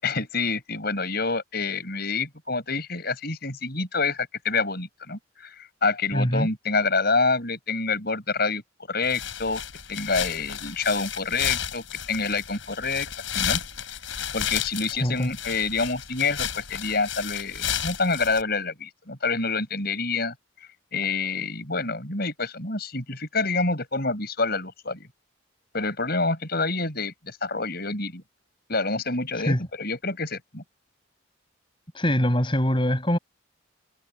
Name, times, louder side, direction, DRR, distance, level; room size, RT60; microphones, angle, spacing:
voice 1, 0.0-8.6 8.9-9.6 9.9-13.1 13.3-13.6 14.3-20.3 20.9-25.1 25.7-28.2 28.7-30.6, left 4 dB, 50° left, 7.4 m, -27 dB
voice 2, 6.1-6.5 15.0-15.3 29.4-29.6 31.9-33.2, equal, 25° left, 6.2 m, -23 dB
sound 1, 9.0-18.4, left 9 dB, 75° left, 5.0 m, -32 dB
head